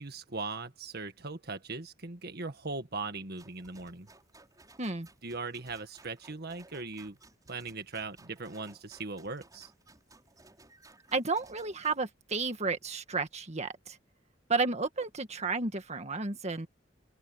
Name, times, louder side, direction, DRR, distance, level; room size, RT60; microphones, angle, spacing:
voice 1, 0.0-4.1 5.2-7.2 7.5-9.7, right 3 dB, 55° right, 1.7 m, -39 dB
sound 1, 3.4-12.0, right 2 dB, 20° right, 6.1 m, -59 dB
voice 2, 11.1-14.0 14.5-16.7, right 4 dB, 35° right, 1.7 m, -32 dB
open air
head